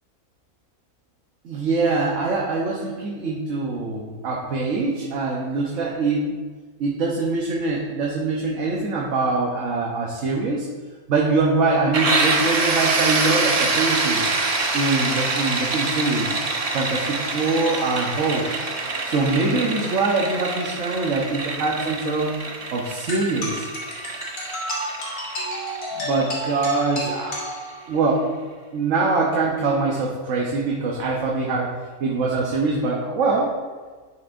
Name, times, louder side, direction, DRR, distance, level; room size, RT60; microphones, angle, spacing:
voice 1, 1.4-6.3 6.8-10.7 11.1-14.3 14.7-16.4 16.7-18.5 19.0-22.4 22.7-23.7 26.0-27.4 27.9-28.3 28.7-31.7 32.0-33.5, right 3 dB, 60° right, -3 dB, 1.2 m, -23 dB
sound 1, 11.9-27.5, right 3 dB, 40° right, 0.5 m, -26 dB
sound 2, 23.1-28.1, left 1 dB, 65° left, 2.1 m, -31 dB
10.5 x 6.2 x 2.6 m, 1.4 s
omnidirectional pair, 1.5 m